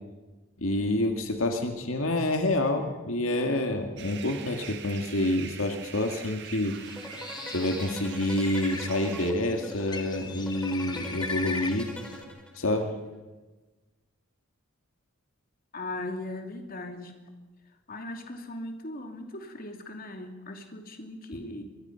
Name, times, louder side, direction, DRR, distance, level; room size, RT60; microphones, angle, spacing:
voice 1, 0.6-6.8 7.5-11.9 12.5-12.9, left 1 dB, 75° left, 4 dB, 2.1 m, -28 dB
sound 1, 4.0-9.3, right 9 dB, 60° right, 1.8 m, -44 dB
Bird, 6.7-12.2, left 4 dB, 20° left, 1.7 m, -40 dB
sound 2, 6.9-12.8, equal, 5° left, 4.8 m, -42 dB
voice 2, 15.7-17.1 17.9-21.6, left 2 dB, 45° left, 4 dB, 2.7 m, -38 dB
26.5 x 23.0 x 5.8 m, 1.2 s
head